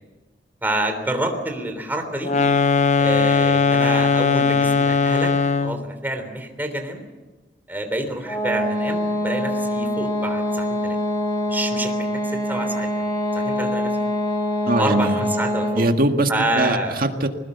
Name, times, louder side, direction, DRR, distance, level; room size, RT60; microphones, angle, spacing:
voice 1, 0.6-2.3 3.0-5.3 5.6-7.0 7.7-11.0 11.5-13.1 13.3-13.9 14.8-15.8 16.3-17.0, right 1 dB, 10° right, 5 dB, 3.5 m, -27 dB
sound 1, 2.2-5.9, left 4 dB, 40° left, 0.8 m, -19 dB
sound 2, 8.2-15.9, left 1 dB, 20° left, 6.7 m, -24 dB
voice 2, 14.7-15.2 15.7-17.3, right 2 dB, 50° right, 5 dB, 1.9 m, -21 dB
21.5 x 19.5 x 8.2 m, 1.2 s
head